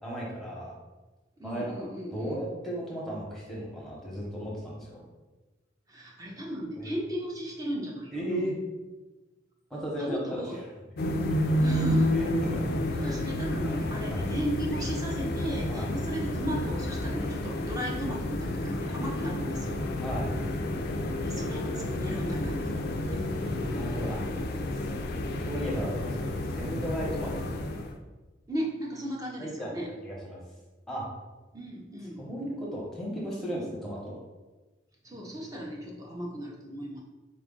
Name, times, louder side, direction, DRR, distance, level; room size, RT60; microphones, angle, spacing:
voice 1, 0.0-0.7 1.4-5.0 6.8-6.9 8.1-8.6 9.7-10.6 12.2-12.7 13.6-13.8 14.1-14.2 15.7-15.9 20.0-20.3 23.7-24.2 24.8-24.9 25.5-27.9 29.4-29.7 30.0-30.4 30.9-31.0 32.2-34.2, equal, ahead, -4 dB, 0.9 m, -35 dB
voice 2, 1.4-2.4 4.0-4.2 5.9-8.4 10.0-10.6 11.6-12.2 12.9-19.8 21.2-23.2 23.6-24.2 28.5-29.9 31.5-32.3 35.0-37.0, equal, 20° right, -1 dB, 0.6 m, -36 dB
sound 1, 11.0-28.0, left 1 dB, 50° left, 0.3 m, -30 dB
sound 2, 23.0-27.9, right 1 dB, 60° right, 0.6 m, -50 dB
4.2 x 2.4 x 3.7 m, 1.2 s
head